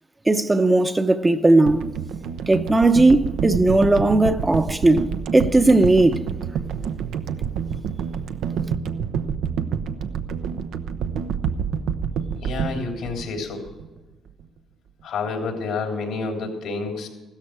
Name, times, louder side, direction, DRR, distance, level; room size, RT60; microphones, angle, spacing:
voice 1, 0.3-1.8 2.5-6.2, right 2 dB, 20° right, 0.7 m, -17 dB
sound 1, 1.7-14.0 14.3-14.4, right 7 dB, 85° right, 0.7 m, -28 dB
voice 2, 12.4-13.6 15.0-17.1, left 4 dB, 85° left, 3.5 m, -29 dB
15.5 x 13.0 x 4.8 m
cardioid pair, 90°, 0 cm